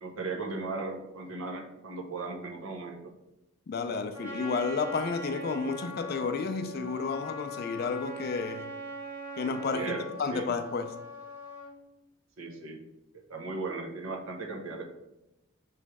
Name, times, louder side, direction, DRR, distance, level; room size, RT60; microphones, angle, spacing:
voice 1, 0.0-3.1 9.7-10.6 12.4-12.8 13.3-14.9, right 3 dB, 80° right, 0.7 m, -37 dB
voice 2, 3.7-8.7 9.4-10.9, left 4 dB, 45° left, 0.3 m, -31 dB
Trumpet, 4.1-11.7, equal, 10° right, 0.8 m, -41 dB
3.1 x 3.1 x 4.7 m
head